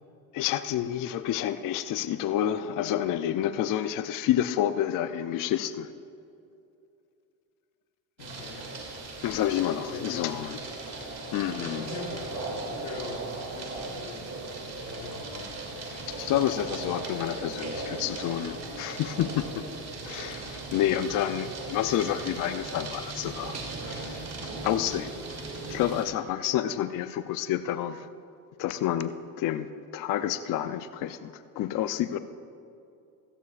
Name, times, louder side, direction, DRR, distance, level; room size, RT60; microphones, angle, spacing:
voice 1, 0.3-5.9 9.2-10.6 11.0-11.8 15.9-19.6 20.0-24.2 24.6-25.2 25.7-28.1 28.6-32.2, left 11 dB, 45° left, 11 dB, 0.5 m, -29 dB
voice 2, 8.2-8.7 9.8-10.5 11.4-14.3 14.9-15.7 18.7-18.8 20.7-21.1, left 5 dB, 85° left, 4 dB, 1.6 m, -43 dB
sound 1, 8.2-26.0, right 3 dB, 35° right, 2.7 m, -37 dB
16.5 x 14.5 x 2.5 m, 2.6 s
supercardioid pair, 100°, 47 cm